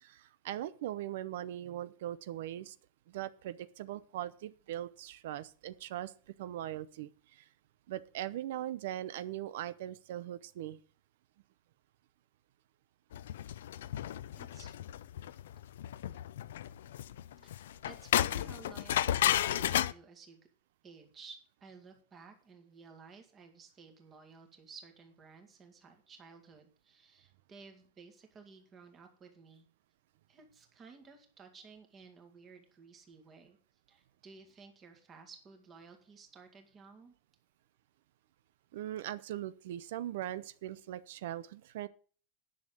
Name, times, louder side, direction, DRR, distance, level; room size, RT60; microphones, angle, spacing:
voice 1, 0.0-2.8 3.1-6.1 6.4-7.5 7.9-10.8 38.7-41.9, right 12 dB, 65° right, 15 dB, 0.6 m, -40 dB
sound 1, 13.1-19.9, left 12 dB, 90° left, 0.5 m, -33 dB
voice 2, 14.4-14.8 17.4-20.4 20.8-29.7 30.3-33.6 33.9-37.1, right 5 dB, 20° right, 5 dB, 1.9 m, -55 dB
10.5 x 6.5 x 7.2 m, 0.41 s
supercardioid pair, 170°, 0 cm